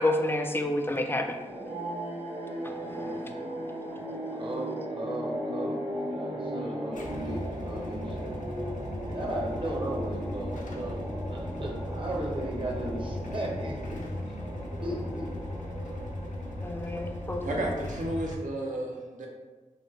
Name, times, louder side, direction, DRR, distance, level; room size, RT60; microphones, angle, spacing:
voice 1, 0.0-1.4 2.6-3.4 16.6-17.6, left 1 dB, 15° left, 4 dB, 0.3 m, -30 dB
sound 1, 1.3-17.9, equal, 65° right, 1.2 m, -37 dB
voice 2, 4.4-8.5 9.1-11.0 11.3-14.2 14.8-15.3, right 1 dB, 40° right, -2 dB, 0.7 m, -36 dB
Motorcycle / Engine starting / Idling, 6.9-18.4, left 1 dB, 80° left, 0.5 m, -38 dB
voice 3, 17.4-19.3, right 1 dB, 90° right, -1 dB, 0.6 m, -32 dB
3.1 x 2.1 x 3.1 m, 1.3 s
cardioid pair, 55°, 13 cm